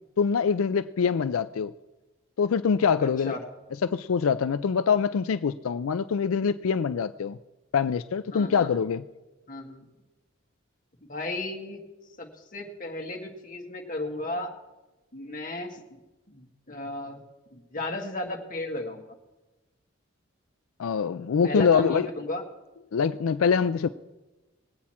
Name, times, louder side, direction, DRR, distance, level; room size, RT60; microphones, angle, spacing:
voice 1, 0.2-1.7 2.4-3.4 3.8-7.4 7.7-9.0 20.8-22.1 22.9-23.9, left 6 dB, 85° left, 0.4 m, -24 dB
voice 2, 3.0-3.4 8.3-8.7 9.5-9.9 11.1-11.8 12.2-14.5 15.1-15.8 16.3-17.2 17.5-19.1 21.4-22.4, left 2 dB, 40° left, 1.8 m, -34 dB
21.5 x 8.4 x 4.4 m
head